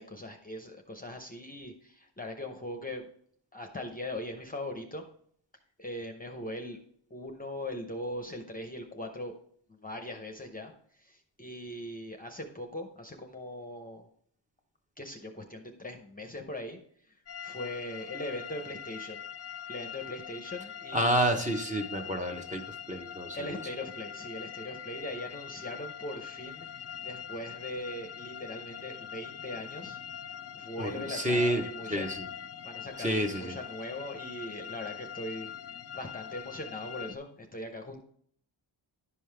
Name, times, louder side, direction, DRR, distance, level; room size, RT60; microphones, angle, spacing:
voice 1, 0.0-3.1 3.5-5.0 5.8-6.8 7.1-9.3 9.7-10.7 11.0-14.1 15.0-16.8 17.4-19.2 19.7-21.2 23.3-26.7 27.0-30.0 30.5-32.1 32.6-35.5 35.9-38.0, left 1 dB, 20° left, 4 dB, 0.8 m, -40 dB
sound 1, 17.3-37.1, left 9 dB, 35° left, 0.4 m, -43 dB
voice 2, 20.9-23.6 30.8-32.3 33.0-33.6, right 1 dB, 15° right, 4 dB, 1.0 m, -30 dB
11.0 x 5.5 x 3.3 m, 0.62 s
wide cardioid pair, 155°, 45 cm